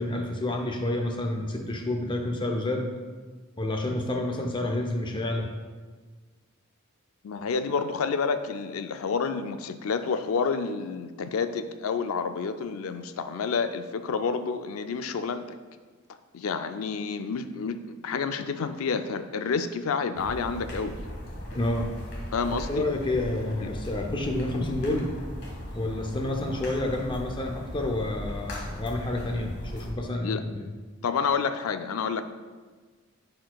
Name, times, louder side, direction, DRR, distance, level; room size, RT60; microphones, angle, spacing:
voice 1, 0.0-2.9 3.6-5.5 21.6-21.9 22.7-25.1 25.7-30.7, left 1 dB, 25° left, 3 dB, 0.5 m, -29 dB
voice 2, 7.2-15.4 16.3-17.8 18.0-21.0 22.3-22.9 23.6-23.8 30.2-30.4 31.0-32.2, left 5 dB, 75° left, 10 dB, 0.4 m, -29 dB
sound 1, 20.1-29.9, equal, 55° left, 1.3 m, -38 dB
10.0 x 4.4 x 2.3 m, 1.4 s
head